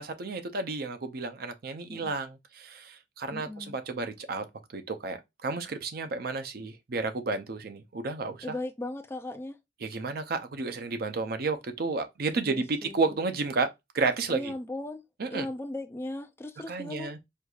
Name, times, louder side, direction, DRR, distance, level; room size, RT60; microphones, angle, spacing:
voice 1, 0.0-4.5 4.7-8.5 9.8-14.5 15.2-15.5 16.7-17.2, right 3 dB, 60° right, 0.5 m, -32 dB
voice 2, 3.3-3.8 8.4-9.6 12.4-13.1 14.3-15.0 15.3-17.1, left 2 dB, 15° left, 0.4 m, -37 dB
4.5 x 2.5 x 2.3 m
head